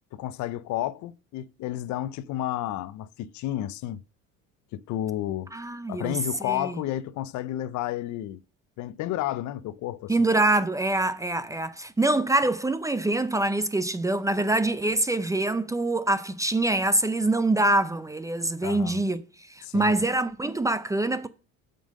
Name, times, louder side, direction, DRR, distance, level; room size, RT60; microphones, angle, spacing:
voice 1, 0.1-4.0 4.7-5.5 5.9-8.4 8.8-10.1 18.6-19.0 19.6-19.9, left 13 dB, 65° left, 0.5 m, -31 dB
voice 2, 5.5-6.7 10.1-19.2 19.5-21.3, right 2 dB, 10° right, 0.4 m, -25 dB
7.3 x 5.4 x 6.3 m
cardioid pair, 130°, 32 cm